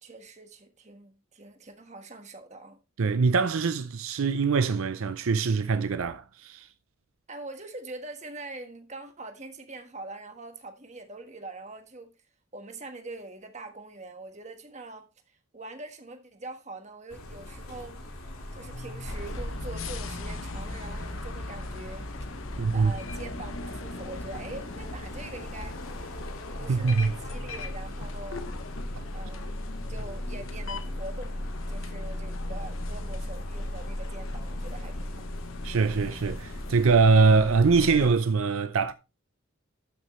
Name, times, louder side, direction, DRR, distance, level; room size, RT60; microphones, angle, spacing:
voice 1, 0.0-2.8 7.3-12.1 12.5-18.0 18.5-22.1 22.7-25.8 26.6-28.4 29.1-29.6 29.9-35.2, right 2 dB, 30° right, 1.4 m, -43 dB
voice 2, 3.0-6.7 22.6-22.9 26.7-27.1 35.6-38.9, right 4 dB, 75° right, 0.5 m, -23 dB
sound 1, 17.1-36.9, left 1 dB, 85° left, 2.2 m, -42 dB
sound 2, 19.1-38.1, left 1 dB, 65° left, 1.0 m, -37 dB
12.5 x 6.4 x 3.1 m
head